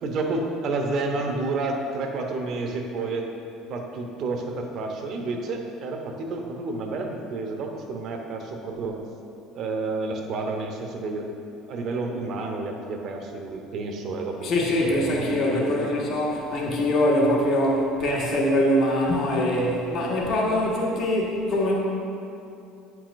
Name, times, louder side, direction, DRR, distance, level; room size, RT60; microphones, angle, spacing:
voice 1, 0.0-3.3 3.7-9.0 9.5-11.3 11.7-14.7 15.0-15.9, right 3 dB, 55° right, 3 dB, 0.7 m, -30 dB
voice 2, 14.4-21.7, left 1 dB, 50° left, -3 dB, 1.3 m, -23 dB
8.7 x 4.7 x 2.5 m, 2.7 s
hypercardioid pair, 70°, 0 cm